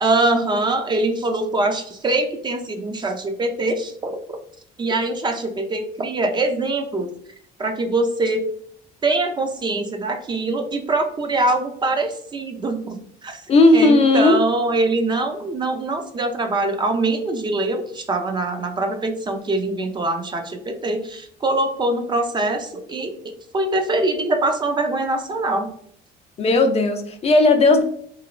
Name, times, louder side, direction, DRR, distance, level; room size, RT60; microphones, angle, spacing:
voice 1, 0.0-4.4 4.8-7.1 7.6-8.4 9.0-13.4 13.7-23.1 23.5-25.7, right 2 dB, 25° right, 5 dB, 0.4 m, -23 dB
voice 2, 13.5-14.4 26.4-27.8, left 2 dB, 40° left, 6 dB, 0.4 m, -15 dB
3.1 x 2.9 x 2.4 m, 0.65 s
cardioid pair, 110°, 17 cm